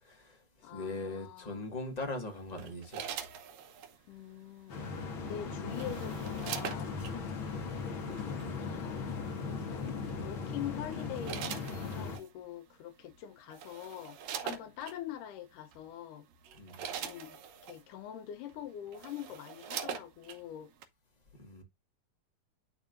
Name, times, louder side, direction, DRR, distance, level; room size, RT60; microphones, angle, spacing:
voice 1, 0.0-3.0 16.5-16.8 21.3-21.6, left 2 dB, 25° left, 1.0 m, -40 dB
voice 2, 0.6-1.7 4.1-7.0 7.7-8.2 8.6-14.2 14.4-16.3 17.0-20.7, left 11 dB, 85° left, 2.4 m, -45 dB
sound 1, 2.6-4.0 5.3-7.2 8.2-8.4 10.1-10.4 10.9-12.3 13.1-13.2 13.5-15.0 15.7-15.9 16.3-17.8 18.5-18.6 18.9-20.4 20.8-20.9, right 8 dB, 65° right, 2.0 m, -42 dB
sound 2, 4.7-12.2, left 5 dB, 50° left, 2.0 m, -38 dB
11.0 x 3.6 x 2.5 m
omnidirectional pair, 3.6 m